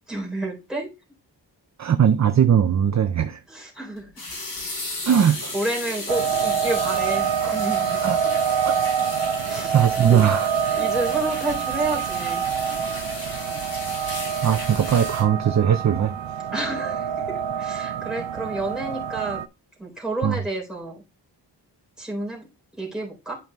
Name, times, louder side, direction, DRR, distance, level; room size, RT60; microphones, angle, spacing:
voice 1, 0.1-0.9 3.5-4.1 5.2-8.0 9.5-9.8 10.1-10.2 10.7-12.5 16.5-19.4 19.8-21.0 22.0-22.5 22.7-23.4, right 2 dB, ahead, 3.5 m, -30 dB
voice 2, 1.8-3.4 5.1-5.5 8.0-8.2 8.7-8.8 9.7-10.5 14.4-16.1 20.2-20.4, right 8 dB, 40° right, 0.4 m, -19 dB
sound 1, 4.0-15.2, left 2 dB, 70° left, 4.4 m, -35 dB
sound 2, 6.1-19.5, right 8 dB, 90° right, 0.5 m, -26 dB
12.0 x 5.3 x 2.2 m
wide cardioid pair, 140°, 43 cm